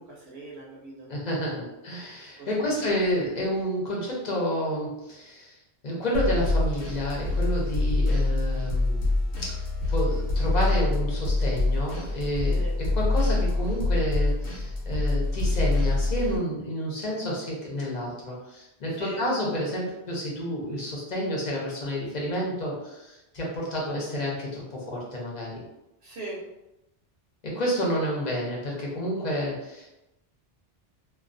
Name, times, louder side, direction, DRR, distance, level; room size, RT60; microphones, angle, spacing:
voice 1, 0.0-1.1 2.4-2.9 12.5-12.8 18.9-19.3 26.0-26.4, right 2 dB, 75° right, -5 dB, 0.8 m, -40 dB
voice 2, 1.1-5.6 5.8-9.1 9.4-9.6 9.9-25.6 27.4-30.0, equal, 45° left, -4 dB, 0.8 m, -30 dB
sound 1, 6.1-16.4, left 2 dB, 85° left, 1.0 m, -25 dB
2.3 x 2.3 x 2.5 m, 0.93 s
omnidirectional pair, 1.1 m